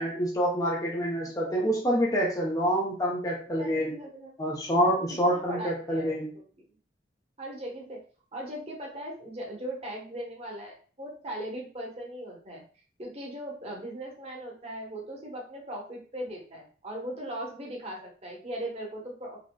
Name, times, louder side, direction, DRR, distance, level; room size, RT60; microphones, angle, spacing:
voice 1, 0.0-4.0 4.4-6.3, equal, 20° left, -3 dB, 0.8 m, -27 dB
voice 2, 3.6-4.3 5.2-6.4 7.4-8.0 8.3-12.6 13.0-19.4, right 1 dB, 35° right, -1 dB, 1.1 m, -39 dB
4.9 x 2.9 x 2.3 m, 0.41 s
head